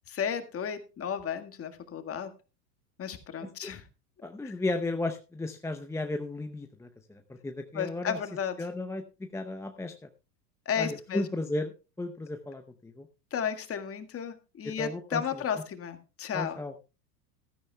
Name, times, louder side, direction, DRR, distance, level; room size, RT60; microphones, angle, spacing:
voice 1, 0.1-2.3 3.0-3.8 4.4-4.5 7.7-8.5 10.7-11.3 13.3-16.6, left 8 dB, 30° left, 8 dB, 1.8 m, -33 dB
voice 2, 4.2-8.2 8.6-9.0 9.3-9.9 10.8-11.7 12.0-13.1 14.8-15.2 16.3-16.7, left 2 dB, 5° left, 6 dB, 0.6 m, -34 dB
15.5 x 13.0 x 2.3 m, 0.31 s
hypercardioid pair, 100°, 49 cm